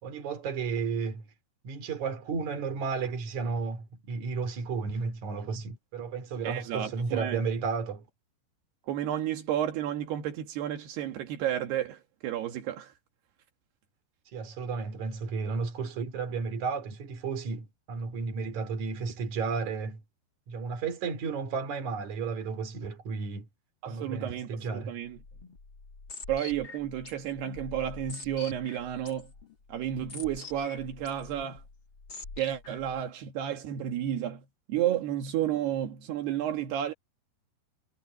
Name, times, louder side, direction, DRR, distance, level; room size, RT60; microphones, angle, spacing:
voice 1, 0.0-1.3 1.6-8.0 14.3-20.0 20.5-23.5 23.9-25.0, right 5 dB, 50° right, 4.2 m, -33 dB
voice 2, 6.4-7.4 8.9-12.9 23.8-25.2 26.3-29.3 29.7-31.6 32.4-36.9, right 11 dB, 80° right, 3.8 m, -32 dB
sound 1, 25.1-33.0, left 3 dB, 30° left, 4.0 m, -46 dB
omnidirectional pair, 4.6 m